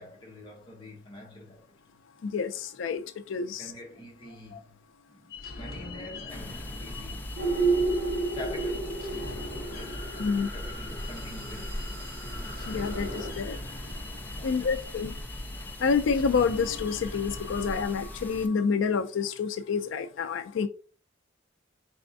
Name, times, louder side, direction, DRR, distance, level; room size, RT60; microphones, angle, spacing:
voice 1, 0.0-2.3 3.4-4.8 5.1-7.4 8.3-9.1 9.7-12.2 14.2-15.4, left 1 dB, 25° left, 1.0 m, -46 dB
voice 2, 2.2-3.0 3.3-3.7 10.2-10.5 12.7-13.6 14.4-15.1 15.8-20.7, left 5 dB, 85° left, 0.4 m, -28 dB
sound 1, 5.3-17.9, left 3 dB, 50° left, 0.7 m, -43 dB
sound 2, 6.3-18.5, equal, 10° left, 0.4 m, -40 dB
sound 3, 7.4-13.3, right 3 dB, 50° right, 1.7 m, -32 dB
4.2 x 3.3 x 2.6 m
head